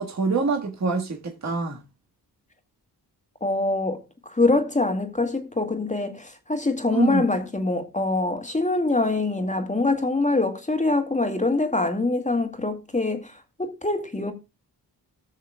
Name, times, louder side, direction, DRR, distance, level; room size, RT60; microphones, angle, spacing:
voice 1, 0.0-1.8 6.9-7.2, right 4 dB, 40° right, 1.7 m, -25 dB
voice 2, 3.4-13.3 13.6-14.3, left 2 dB, 20° left, 2.0 m, -24 dB
19.0 x 6.4 x 2.3 m
cardioid pair, 65°, 41 cm